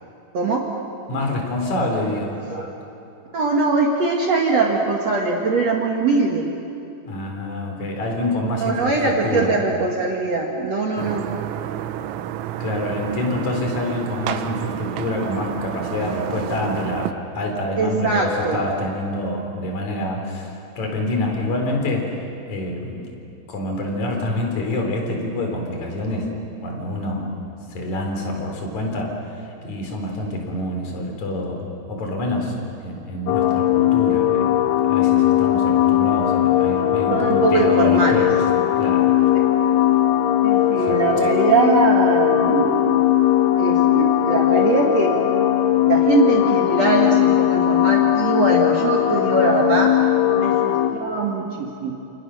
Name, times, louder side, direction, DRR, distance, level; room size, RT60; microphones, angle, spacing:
voice 1, 0.3-0.7 2.5-2.7 3.3-6.5 8.6-11.3 17.8-18.6 37.1-38.2 39.3-39.4 40.4-43.0 43.6-45.2 45.8-49.9 50.4-51.9, right 3 dB, 65° right, -1 dB, 1.6 m, -21 dB
voice 2, 1.1-2.4 7.0-9.6 12.6-22.1 22.5-23.1 23.5-26.3 26.6-27.3 27.7-32.5 32.8-34.6 34.8-38.4 38.8-39.2 40.8-41.0, left 1 dB, 40° left, 1 dB, 4.6 m, -26 dB
sound 1, 11.0-17.1, right 12 dB, 85° right, 3.6 m, -30 dB
sound 2, 33.3-50.9, left 12 dB, 70° left, 2.6 m, -18 dB
29.5 x 28.0 x 6.4 m, 2.7 s
omnidirectional pair, 5.9 m